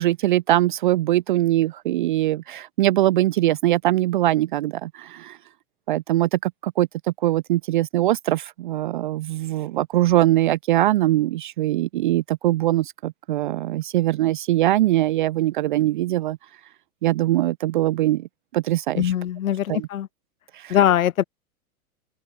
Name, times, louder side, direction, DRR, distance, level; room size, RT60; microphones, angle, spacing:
voice 1, 0.0-5.4 5.9-6.9 7.2-16.4 17.0-18.3 18.5-19.1 19.7-19.8 20.5-20.7, right 15 dB, 35° right, 0.4 m, -22 dB
voice 2, 18.9-20.1 20.7-21.2, left 11 dB, 65° left, 1.6 m, -21 dB
open air
figure-of-eight pair, 100°, 44 cm